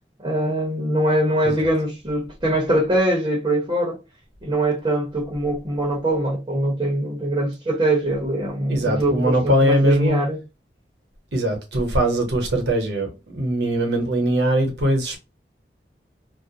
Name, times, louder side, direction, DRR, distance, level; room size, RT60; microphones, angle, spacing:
voice 1, 0.2-4.0 4.4-10.4, right 1 dB, 25° right, 0.7 m, -22 dB
voice 2, 8.7-10.2 11.3-15.2, right 1 dB, 75° right, 0.8 m, -21 dB
2.4 x 2.0 x 2.7 m
head